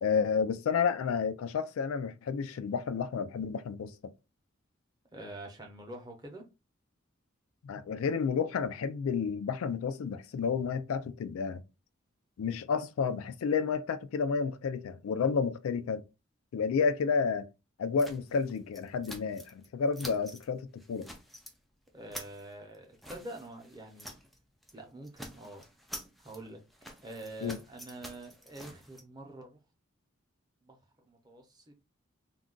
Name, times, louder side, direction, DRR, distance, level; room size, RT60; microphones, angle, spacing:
voice 1, 0.0-4.1 7.6-11.6 12.4-16.0 16.5-17.5 17.8-21.1 27.4-27.6, left 5 dB, 80° left, 0.3 m, -31 dB
voice 2, 5.1-6.5 21.9-24.2 24.7-25.6 26.2-26.6 27.0-29.6 30.6-31.7, right 1 dB, 20° right, 0.7 m, -46 dB
sound 1, 18.0-19.7 19.9-20.5 20.8-21.6 21.9-24.4 24.6-24.8 25.0-29.0, equal, ahead, 0.3 m, -48 dB
2.4 x 2.2 x 3.7 m
head